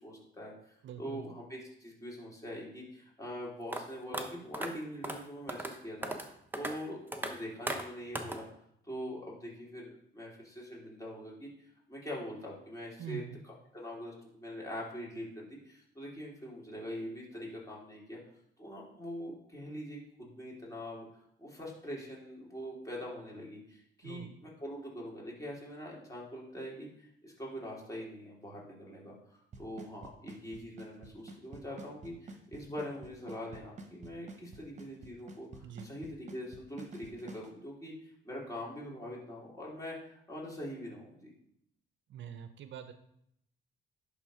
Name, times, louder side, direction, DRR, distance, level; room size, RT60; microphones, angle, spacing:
voice 1, 0.0-8.5 8.8-18.2 18.6-21.1 21.4-41.3, equal, 15° left, -4 dB, 3.1 m, -43 dB
voice 2, 0.8-1.3 13.0-13.4 24.0-24.3 35.6-35.9 42.1-42.9, right 9 dB, 70° right, 9 dB, 0.7 m, -44 dB
sound 1, 3.7-3.8 4.1-4.2 4.5-4.7 5.0-5.2 5.5-5.7 6.0-6.3 6.5-6.7 7.1-7.3 7.7-7.8 8.1-8.4, right 1 dB, 10° right, 1.0 m, -36 dB
Drum kit / Snare drum / Bass drum, 29.5-37.5, right 3 dB, 35° right, 1.2 m, -47 dB
10.5 x 3.6 x 4.9 m, 0.73 s
cardioid pair, 90°, 20 cm